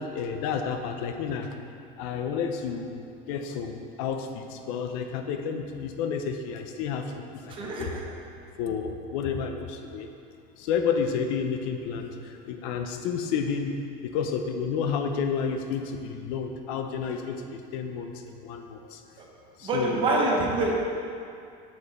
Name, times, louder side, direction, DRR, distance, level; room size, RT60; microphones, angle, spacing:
voice 1, 0.0-1.5 2.0-3.0 3.3-7.9 8.6-10.1 10.6-13.7 14.0-19.0 19.6-20.0, left 6 dB, 65° left, 5 dB, 0.6 m, -31 dB
voice 2, 7.5-8.0 19.2-19.3 19.6-20.8, right 2 dB, 25° right, -1 dB, 0.8 m, -26 dB
6.8 x 5.0 x 4.2 m, 2.4 s
cardioid pair, 170°, 19 cm